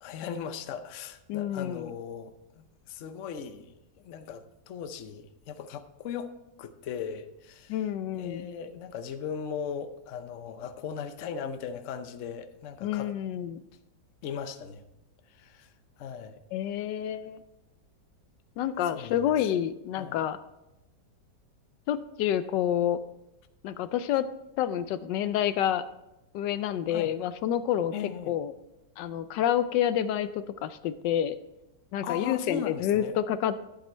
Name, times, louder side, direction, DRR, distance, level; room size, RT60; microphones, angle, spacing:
voice 1, 0.0-6.3 6.6-7.8 8.1-13.1 14.2-14.8 15.3-15.7 16.0-16.4 18.9-19.3 20.0-20.2 26.9-27.1 27.9-28.3 32.0-33.2, left 7 dB, 60° left, 9 dB, 0.8 m, -38 dB
voice 2, 1.3-1.9 7.7-8.5 12.8-13.6 16.5-17.4 18.6-20.4 21.9-23.0 23.6-24.3 24.6-25.8 26.3-27.9 28.3-28.5 29.0-31.4 31.9-33.6, left 10 dB, 80° left, 13 dB, 1.2 m, -28 dB
11.5 x 8.1 x 4.4 m, 0.92 s
omnidirectional pair, 2.0 m